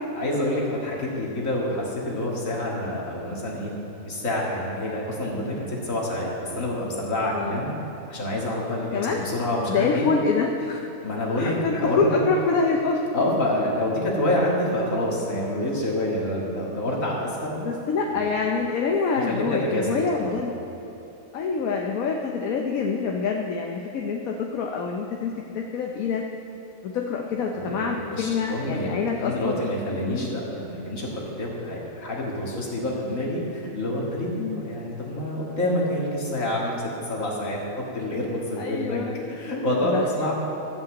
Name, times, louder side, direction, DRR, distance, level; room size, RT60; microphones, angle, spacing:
voice 1, 0.1-3.7 4.0-7.7 8.1-10.1 11.0-12.3 13.1-17.6 18.1-18.2 19.1-20.3 27.5-28.9 29.2-34.3 34.6-36.8 37.0-37.6 37.9-39.0 39.3-40.3, left 1 dB, 70° left, -3 dB, 2.4 m, -27 dB
voice 2, 8.9-9.3 9.7-10.8 11.4-13.0 17.6-20.5 21.3-26.3 26.8-29.6 30.1-30.4 34.4-34.6 38.6-39.2 39.8-40.1, left 4 dB, 85° left, 1 dB, 1.2 m, -26 dB
12.5 x 5.5 x 8.1 m, 3.0 s
omnidirectional pair, 1.4 m